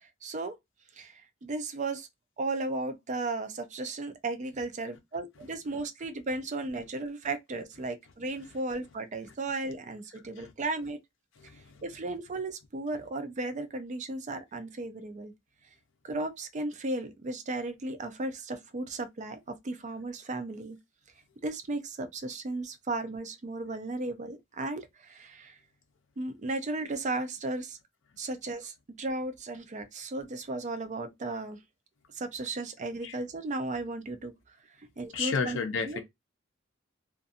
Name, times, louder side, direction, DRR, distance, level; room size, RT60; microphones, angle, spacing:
voice 1, 0.0-0.5 1.0-2.1 2.4-11.0 11.8-15.3 16.0-20.8 21.4-25.6 26.2-27.8 28.2-31.6 32.1-34.3 34.8-35.6 35.9-36.0, right 2 dB, 40° right, 0.5 m, -35 dB
voice 2, 11.4-11.8 33.0-33.2 35.1-36.0, left 5 dB, 70° left, 0.5 m, -32 dB
2.6 x 2.5 x 2.4 m
head